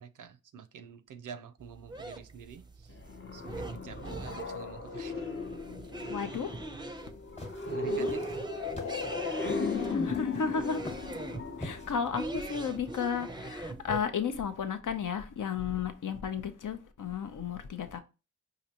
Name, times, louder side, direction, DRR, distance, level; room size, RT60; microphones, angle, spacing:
voice 1, 0.0-3.0 3.3-5.1 7.7-8.3 9.2-9.4, right 7 dB, 85° right, 0.5 m, -47 dB
sound 1, 1.6-14.0, right 2 dB, 15° right, 0.5 m, -42 dB
sound 2, 2.9-12.6, left 4 dB, 40° left, 0.7 m, -36 dB
voice 2, 6.1-6.6 7.9-8.1 9.7-10.9 11.6-18.0, left 6 dB, 80° left, 0.7 m, -33 dB
sound 3, 7.0-12.0, left 1 dB, 20° left, 1.0 m, -46 dB
5.0 x 2.6 x 2.8 m
cardioid pair, 50°, 31 cm